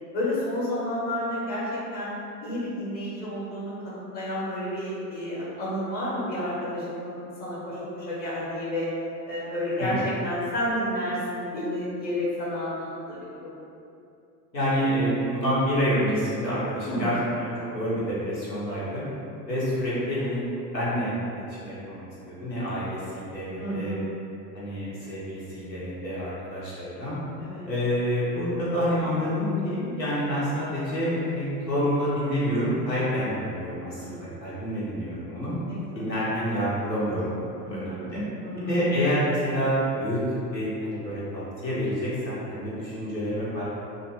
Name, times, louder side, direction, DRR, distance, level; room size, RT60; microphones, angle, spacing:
voice 1, 0.1-2.1 2.4-8.9 9.3-13.6 16.9-17.1 23.6-24.0 27.4-27.7 34.0-34.5 35.7-36.1 37.7-38.0 38.4-38.7, left 1 dB, 20° left, -8 dB, 0.8 m, -31 dB
voice 2, 14.5-19.1 19.5-20.4 20.7-24.0 24.5-27.2 27.6-35.6 35.9-37.4 37.7-38.2 38.6-40.2 40.5-43.6, equal, 90° left, -9 dB, 0.8 m, -28 dB
2.5 x 2.1 x 2.8 m, 2.7 s
figure-of-eight pair, 80°, 49 cm